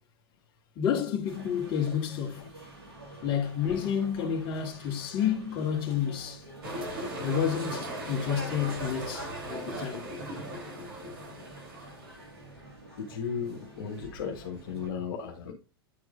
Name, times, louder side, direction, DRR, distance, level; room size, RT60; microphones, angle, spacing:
voice 1, 0.8-2.4 3.2-6.4 7.2-10.1, left 8 dB, 35° left, 2.1 m, -30 dB
sound 1, 1.3-14.9, right 1 dB, 90° right, 2.2 m, -49 dB
sound 2, 6.6-12.6, right 1 dB, 65° right, 3.4 m, -38 dB
voice 2, 13.0-15.5, left 6 dB, 60° left, 1.7 m, -35 dB
9.8 x 4.7 x 2.5 m
figure-of-eight pair, 95°, 13 cm